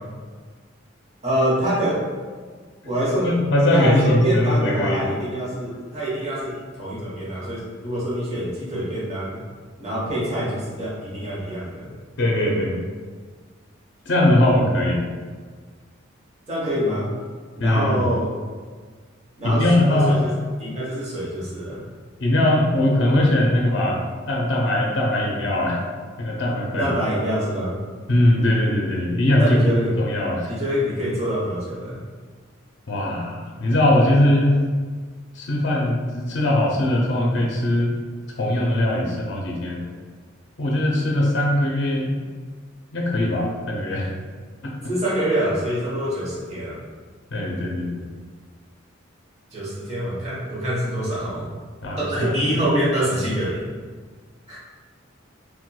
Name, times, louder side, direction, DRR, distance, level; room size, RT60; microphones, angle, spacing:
voice 1, 1.2-2.1 2.8-3.3 3.7-9.4 9.8-11.9 16.5-17.1 17.5-18.3 19.4-20.3 20.6-21.8 26.8-27.7 29.4-29.9 30.5-32.0 44.8-46.8 49.5-51.5 52.0-53.7 54.5-54.6, equal, 30° right, -7 dB, 0.9 m, -25 dB
voice 2, 3.2-5.1 12.2-12.8 14.1-15.0 17.6-18.0 19.4-20.2 22.2-24.0 24.3-25.8 26.2-26.9 28.1-29.6 30.0-30.5 32.9-34.6 35.3-37.9 38.4-39.8 40.6-42.1 42.9-44.1 44.6-44.7 47.3-48.1 51.8-52.4, left 1 dB, 60° left, -2 dB, 0.5 m, -20 dB
4.2 x 2.2 x 2.3 m, 1.5 s
head